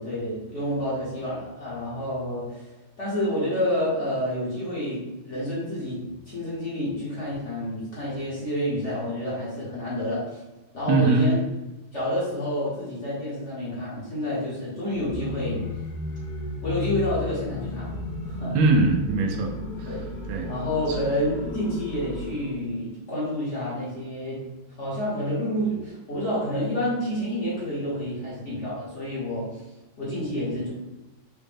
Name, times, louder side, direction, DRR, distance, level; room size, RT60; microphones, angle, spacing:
voice 1, 0.0-10.4 10.7-11.4 11.9-15.7 16.6-18.0 18.2-18.6 19.9-20.1 20.4-24.5 24.8-29.6 30.0-30.7, left 1 dB, 45° left, -7 dB, 1.0 m, -29 dB
voice 2, 10.9-11.3 18.5-19.9 20.3-20.5 20.9-21.0, right 3 dB, 80° right, 1 dB, 1.5 m, -22 dB
sound 1, 14.9-22.6, left 2 dB, 75° left, 1.4 m, -34 dB
4.9 x 2.1 x 3.4 m, 1.0 s
omnidirectional pair, 2.3 m